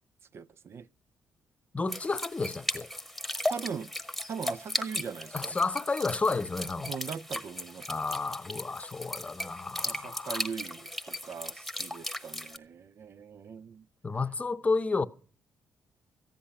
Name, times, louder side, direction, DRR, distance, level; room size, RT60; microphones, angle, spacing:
voice 1, 0.3-0.9 3.4-3.9 4.3-5.6 6.8-8.0 9.8-13.8, right 6 dB, 50° right, 0.5 m, -40 dB
voice 2, 1.7-2.9 5.3-6.9 7.9-10.5 14.0-15.1, left 3 dB, 25° left, 0.8 m, -31 dB
sound 1, 1.9-12.6, left 1 dB, ahead, 1.2 m, -37 dB
14.5 x 10.5 x 5.6 m
cardioid pair, 90°, 5 cm